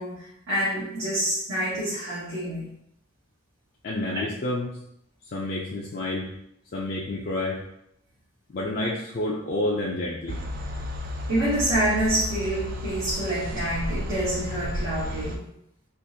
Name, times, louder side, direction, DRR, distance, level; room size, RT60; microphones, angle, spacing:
voice 1, 0.0-2.7 11.3-15.4, right 1 dB, 80° right, -10 dB, 1.1 m, -27 dB
voice 2, 3.8-4.7 5.3-6.3 6.7-7.6 8.5-10.4, left 1 dB, 45° left, -4 dB, 0.4 m, -29 dB
sound 1, 10.3-15.4, left 1 dB, 45° right, 0.3 m, -32 dB
3.7 x 2.5 x 2.7 m, 0.77 s
head